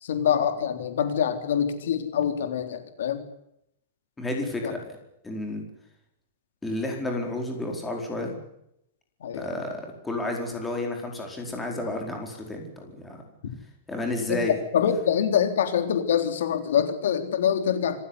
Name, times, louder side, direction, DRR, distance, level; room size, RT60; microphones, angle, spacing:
voice 1, 0.0-3.2 4.6-4.7 9.2-9.6 14.3-14.4 14.7-18.0, left 8 dB, 80° left, 8 dB, 3.5 m, -25 dB
voice 2, 4.2-5.0 5.2-5.6 6.6-8.4 9.3-13.2 13.9-14.6, left 2 dB, 5° left, 2 dB, 4.6 m, -31 dB
26.5 x 15.0 x 9.8 m, 0.78 s
supercardioid pair, 170°, 0 cm